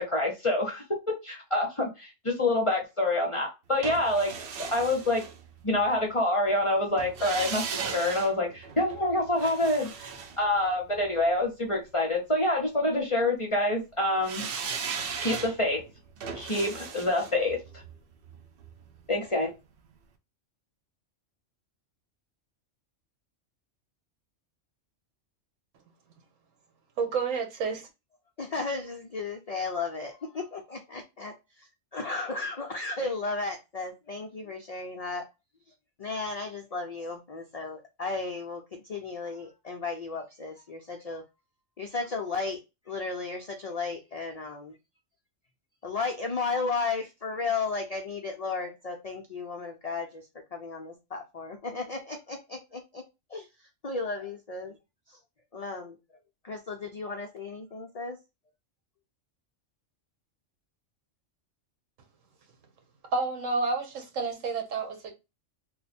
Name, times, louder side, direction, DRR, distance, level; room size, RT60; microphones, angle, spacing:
voice 1, 0.1-0.8 1.2-4.3 4.6-5.2 5.6-10.1 10.4-14.5 15.2-15.8 16.4-17.6 19.1-19.5, left 1 dB, 35° left, 0.6 m, -26 dB
sound 1, 3.8-5.9 7.0-11.2 14.2-19.2 19.5-19.6, right 6 dB, 60° right, 0.7 m, -38 dB
voice 2, 27.0-27.9 63.1-65.1, right 4 dB, 80° right, 1.2 m, -30 dB
voice 3, 28.4-35.3 36.0-41.2 41.8-42.6 42.9-44.8 45.8-53.0 53.3-54.8 55.1-55.2 55.5-56.0 56.4-58.2, left 4 dB, 80° left, 0.3 m, -34 dB
3.0 x 2.1 x 4.1 m
omnidirectional pair, 1.3 m